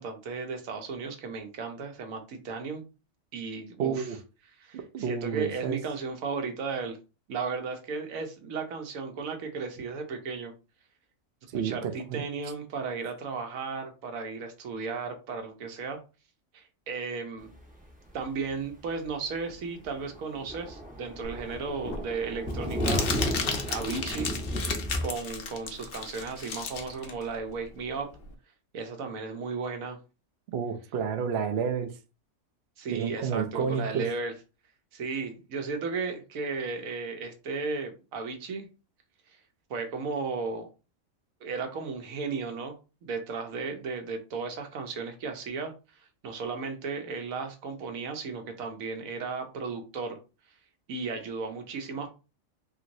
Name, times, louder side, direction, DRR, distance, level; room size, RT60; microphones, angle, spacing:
voice 1, 0.0-2.8 3.3-4.1 4.6-7.0 7.3-10.5 11.6-16.0 16.5-17.5 18.1-23.1 23.7-24.3 25.0-28.1 28.7-30.0 32.8-34.3 34.9-38.7 39.7-40.7 41.4-42.8 43.0-50.2 50.9-52.1, right 4 dB, 80° right, 1.2 m, -35 dB
voice 2, 3.8-4.2 4.7-5.8 11.5-12.2 30.5-31.9 32.9-34.1, right 7 dB, 65° right, 0.7 m, -30 dB
Thunder, 18.1-18.2 18.6-18.7 19.1-19.2 19.5-19.6 19.8-25.0, equal, 10° right, 0.6 m, -33 dB
Crumpling crinkling, 21.2-28.3, left 5 dB, 60° left, 0.7 m, -34 dB
2.9 x 2.9 x 2.6 m
omnidirectional pair, 1.4 m